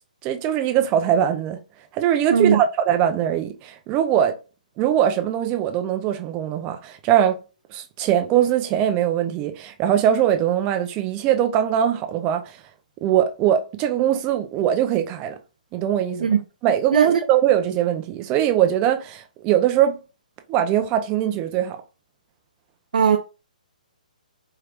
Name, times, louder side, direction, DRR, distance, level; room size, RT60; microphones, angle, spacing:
voice 1, 0.2-1.6 1.9-4.4 4.8-7.4 7.7-12.6 13.0-15.4 15.7-16.3 16.6-20.0 20.5-21.8, right 10 dB, 20° right, 0.6 m, -21 dB
voice 2, 2.3-2.6 16.2-16.4 16.9-17.2 22.9-23.2, right 7 dB, 65° right, 0.6 m, -18 dB
4.5 x 3.2 x 2.4 m
hypercardioid pair, 160°, 5 cm